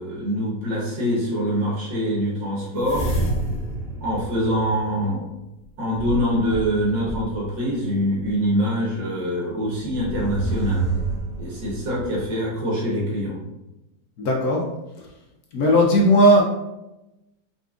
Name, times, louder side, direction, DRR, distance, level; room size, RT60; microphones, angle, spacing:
voice 1, 0.0-3.1 4.0-5.2 5.8-10.9 11.4-13.4, equal, 90° right, -5 dB, 2.2 m, -24 dB
sound 1, 2.8-5.2 5.9-7.5 8.2-8.3 9.8-12.3, right 2 dB, 30° left, 0.7 m, -28 dB
voice 2, 14.2-14.6 15.5-16.4, equal, 60° left, -1 dB, 1.2 m, -16 dB
4.6 x 4.0 x 2.4 m, 0.96 s
omnidirectional pair, 1.9 m